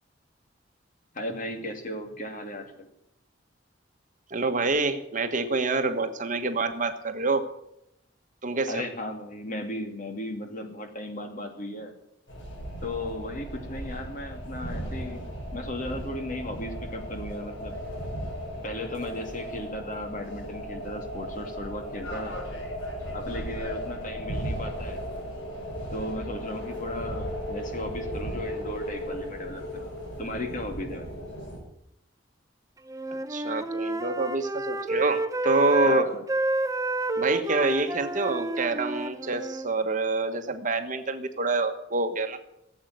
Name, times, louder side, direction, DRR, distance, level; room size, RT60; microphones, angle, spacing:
voice 1, 1.1-2.7 8.7-11.9 12.8-15.2 15.5-17.7 18.6-22.4 23.1-25.0 25.9-29.9 30.2-31.1 35.8-36.2, left 1 dB, 45° left, 4 dB, 2.6 m, -36 dB
voice 2, 4.3-7.4 8.4-8.8 33.3-36.1 37.2-42.4, right 3 dB, 45° right, 8 dB, 1.3 m, -27 dB
sound 1, 12.3-31.6, equal, 85° left, 5.6 m, -36 dB
Wind instrument woodwind instrument, 32.9-39.7, right 2 dB, 20° right, 0.6 m, -29 dB
17.5 x 7.9 x 9.3 m, 0.80 s
head